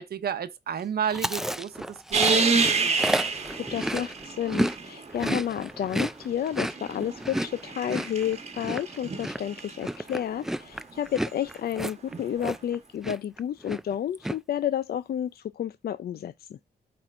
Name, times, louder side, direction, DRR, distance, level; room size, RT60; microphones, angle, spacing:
voice 1, 0.0-2.0 2.3-2.8, right 8 dB, 65° right, 0.9 m, -32 dB
Chewing mastication, 1.1-4.8 5.0-12.8 13.0-13.4 13.6-14.4, equal, ahead, 0.3 m, -31 dB
sound 1, 2.1-5.2 6.3-9.8 12.1-12.2, right 4 dB, 40° right, 1.2 m, -28 dB
voice 2, 3.7-16.6, left 10 dB, 65° left, 0.5 m, -31 dB
13.0 x 4.4 x 2.5 m
wide cardioid pair, 130°, 17 cm